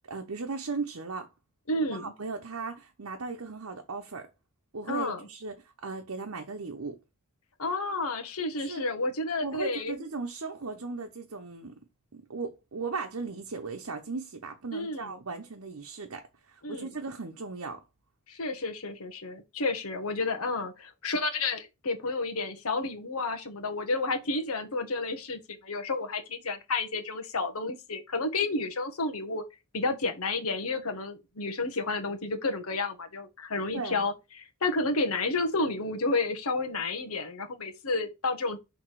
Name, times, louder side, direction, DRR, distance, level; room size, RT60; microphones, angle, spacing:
voice 1, 0.1-1.3 1.9-4.3 4.7-5.5 5.8-7.0 8.6-8.8 9.4-11.7 12.1-17.8 33.7-34.1, right 4 dB, 80° right, 0.9 m, -37 dB
voice 2, 1.7-2.1 4.9-5.2 7.6-10.0 14.7-15.1 16.6-16.9 18.3-29.4 29.7-38.6, left 3 dB, 80° left, 1.3 m, -31 dB
6.1 x 3.5 x 4.8 m
head